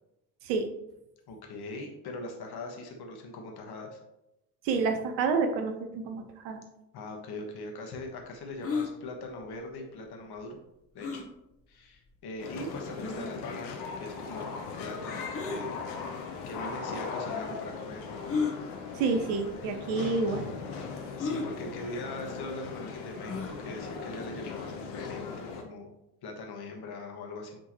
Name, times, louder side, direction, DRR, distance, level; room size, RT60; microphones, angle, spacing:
voice 1, 1.3-4.0 6.9-10.6 10.9-11.2 11.7-14.5 14.8-15.8 16.5-18.2 21.2-25.9 26.2-27.6, left 2 dB, 50° left, 2 dB, 1.4 m, -41 dB
voice 2, 4.6-6.6 18.9-20.4, right 4 dB, 70° right, 6 dB, 0.9 m, -29 dB
sound 1, 8.6-8.9 11.0-11.3 12.1-12.2 13.0-13.3 15.3-15.6 16.7-16.8 18.2-18.6 19.5-19.6 19.9-20.0 21.2-21.5 23.2-23.6, left 5 dB, 30° left, 1.1 m, -32 dB
sound 2, 12.4-25.6, left 5 dB, 65° left, 1.0 m, -39 dB
8.9 x 3.7 x 3.0 m, 0.87 s
figure-of-eight pair, 45°, 48 cm